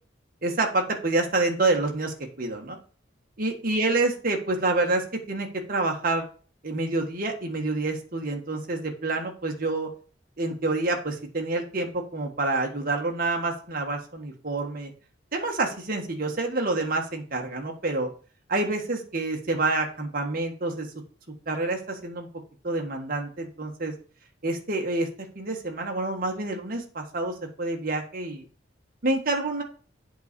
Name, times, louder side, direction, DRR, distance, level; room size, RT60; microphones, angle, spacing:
voice 1, 0.4-2.8 3.4-6.2 6.6-9.9 10.4-14.9 15.3-18.1 18.5-20.9 21.5-22.3 22.6-23.9 24.4-25.1 25.3-28.4 29.0-29.6, right 2 dB, 50° right, 2 dB, 1.6 m, -27 dB
8.1 x 4.2 x 6.7 m, 0.39 s
head